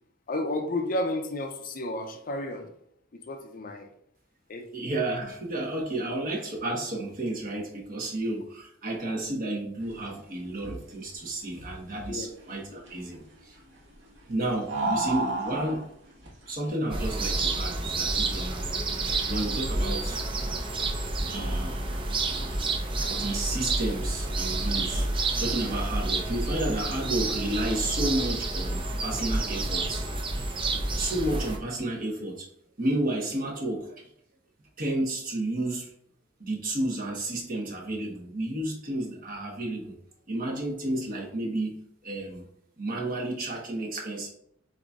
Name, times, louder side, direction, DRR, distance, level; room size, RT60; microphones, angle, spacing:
voice 1, 0.3-2.7 3.3-3.9 4.5-4.6 12.1-12.3, left 1 dB, 45° left, 5 dB, 0.6 m, -31 dB
voice 2, 4.7-13.6 14.3-15.9 16.5-18.7 19.2-20.2 21.2-21.7 22.0-22.2 23.1-25.1 25.4-30.0 31.0-32.5 32.8-34.1 34.8-35.9 36.4-40.0 40.3-42.5 42.8-44.3, right 1 dB, 45° right, -2 dB, 1.2 m, -31 dB
sound 1, 9.8-23.2, right 2 dB, 65° right, 1.4 m, -38 dB
sound 2, 16.9-31.6, right 2 dB, 25° right, 0.5 m, -29 dB
7.8 x 2.7 x 2.4 m, 0.73 s
head